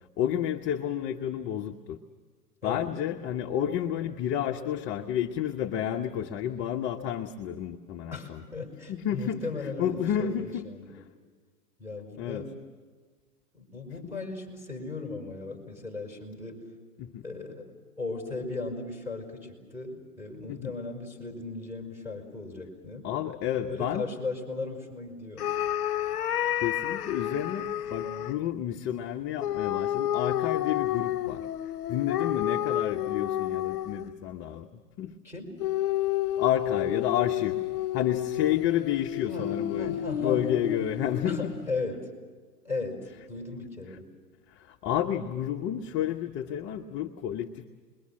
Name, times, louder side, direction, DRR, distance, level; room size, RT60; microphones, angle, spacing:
voice 1, 0.2-2.0 2.6-8.4 8.9-9.4 9.8-10.6 10.9-11.0 12.2-12.5 14.0-14.1 17.0-17.2 20.5-20.7 23.0-24.1 26.0-26.1 26.5-31.5 31.9-34.7 35.0-35.2 36.4-37.6 37.9-41.5 44.5-47.7, left 10 dB, 25° left, 3 dB, 0.9 m, -30 dB
voice 2, 8.1-11.0 11.8-12.6 13.5-16.6 17.2-23.1 23.7-25.5 35.2-35.6 36.7-36.9 39.2-40.8 41.2-42.1 42.6-44.1, left 3 dB, 5° right, 1 dB, 5.7 m, -37 dB
sound 1, 25.4-28.4 29.4-34.2 35.6-41.7, left 12 dB, 70° left, 0.9 m, -30 dB
28.5 x 22.5 x 7.5 m, 1.5 s
hypercardioid pair, 130°, 47 cm